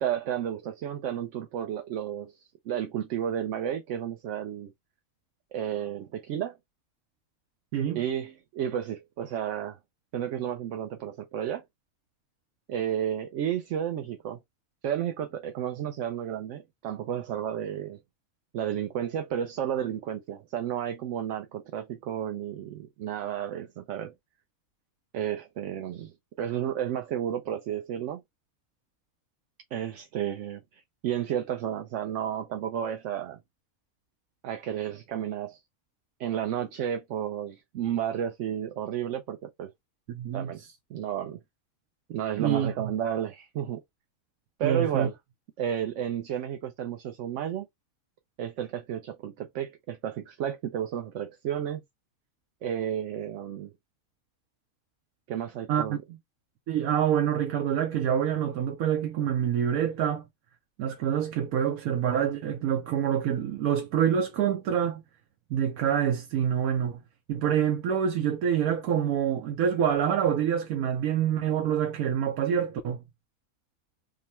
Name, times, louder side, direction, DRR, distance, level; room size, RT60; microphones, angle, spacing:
voice 1, 0.0-4.7 5.5-6.5 7.9-9.8 10.1-11.6 12.7-14.4 14.8-18.0 18.5-24.1 25.1-28.2 29.7-33.4 34.4-35.6 36.2-39.7 40.3-40.6 40.9-41.4 42.1-43.8 44.6-45.1 45.6-47.7 48.4-51.8 52.6-53.7 55.3-56.0, right 10 dB, 65° right, 0.9 m, -32 dB
voice 2, 40.1-40.7 42.4-42.7 44.6-45.1 55.7-56.0 56.7-60.2 60.8-65.0 65.5-67.0 67.3-73.0, right 9 dB, 90° right, 1.1 m, -26 dB
3.7 x 2.1 x 4.2 m
omnidirectional pair, 1.5 m